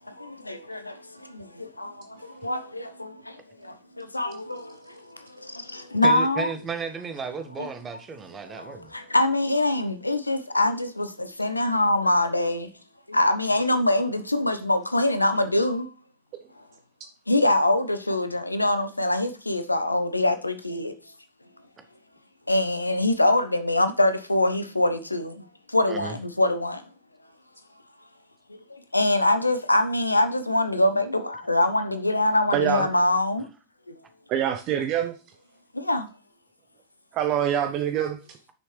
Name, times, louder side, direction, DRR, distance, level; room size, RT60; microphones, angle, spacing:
voice 1, 0.1-6.5 7.6-7.7 8.4-12.7 13.1-15.9 17.3-20.9 22.5-26.8 28.5-33.5 33.9-34.0 35.7-36.1, left 1 dB, 85° left, 0.9 m, -24 dB
voice 2, 6.0-8.9 25.9-26.2, right 5 dB, 20° right, 1.3 m, -34 dB
voice 3, 32.5-32.9 34.3-35.1 37.1-38.4, right 10 dB, 40° right, 0.7 m, -25 dB
9.8 x 6.4 x 3.2 m
figure-of-eight pair, 90°, 0 cm